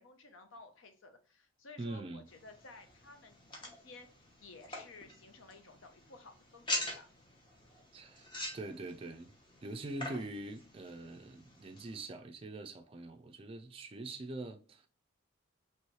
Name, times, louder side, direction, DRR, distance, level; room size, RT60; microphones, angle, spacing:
voice 1, 0.0-7.1, left 3 dB, 65° left, 0.7 m, -55 dB
voice 2, 1.8-2.2 7.9-8.3 8.5-9.3 9.6-14.9, right 2 dB, 25° right, 0.4 m, -43 dB
sound 1, 2.3-12.1, left 1 dB, 25° left, 0.9 m, -45 dB
3.1 x 3.1 x 4.5 m
head